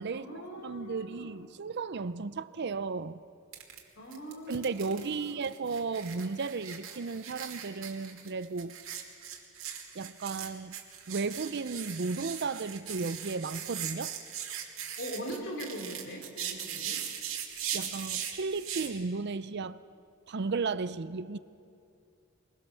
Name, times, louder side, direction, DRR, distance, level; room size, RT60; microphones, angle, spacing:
voice 1, 0.1-1.4 4.0-5.5 15.0-17.0, equal, 60° left, 4.1 m, -41 dB
voice 2, 0.6-3.2 4.5-8.8 9.9-10.8 11.1-14.1 17.7-19.8 20.3-21.4, right 4 dB, 55° right, 0.6 m, -34 dB
sound 1, 3.5-3.8 4.1-18.9, right 9 dB, 70° right, 2.6 m, -39 dB
23.0 x 22.0 x 7.0 m
head